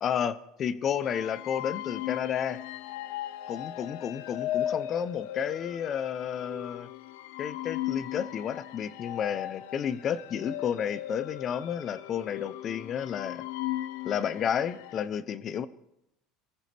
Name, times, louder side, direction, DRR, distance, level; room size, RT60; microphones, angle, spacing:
voice 1, 0.0-2.6 3.5-6.9 7.4-13.4 14.0-15.7, left 8 dB, 30° left, 16 dB, 0.7 m, -31 dB
sound 1, 1.0-15.1, left 13 dB, 80° left, 0.7 m, -37 dB
25.5 x 14.5 x 3.4 m, 0.83 s
cardioid pair, 155°, 0 cm